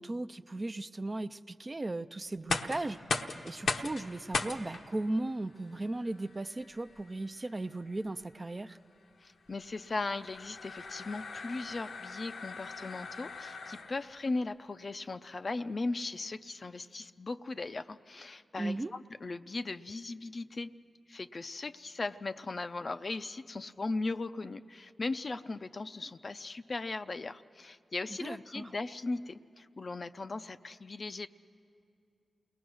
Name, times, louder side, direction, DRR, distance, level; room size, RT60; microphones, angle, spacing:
voice 1, 0.0-3.0 3.4-8.8 18.6-18.9 28.2-28.7, right 2 dB, 35° right, 11 dB, 0.5 m, -36 dB
sound 1, 2.3-14.2, left 4 dB, 80° left, 0.9 m, -40 dB
voice 2, 9.2-20.7 21.1-31.3, left 3 dB, 50° left, 11 dB, 0.5 m, -38 dB
28.5 x 19.5 x 6.3 m, 2.4 s
cardioid pair, 50°, 0 cm